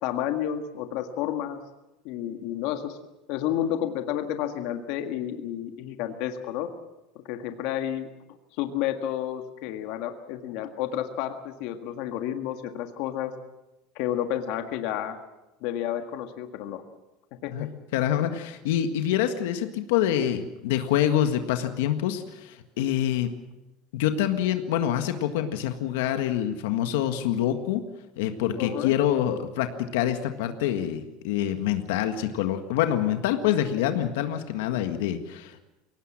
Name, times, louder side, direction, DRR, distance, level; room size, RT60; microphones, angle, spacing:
voice 1, 0.0-1.6 2.0-3.0 3.3-6.7 7.3-8.1 8.6-13.3 14.0-15.2 15.6-16.8 17.4-17.7 28.6-28.9, left 11 dB, 60° left, 6 dB, 1.7 m, -30 dB
voice 2, 17.5-23.3 23.9-27.8 28.2-35.6, left 11 dB, 85° left, 7 dB, 1.7 m, -26 dB
22.0 x 18.5 x 7.5 m, 1.0 s
cardioid pair, 160°, 0 cm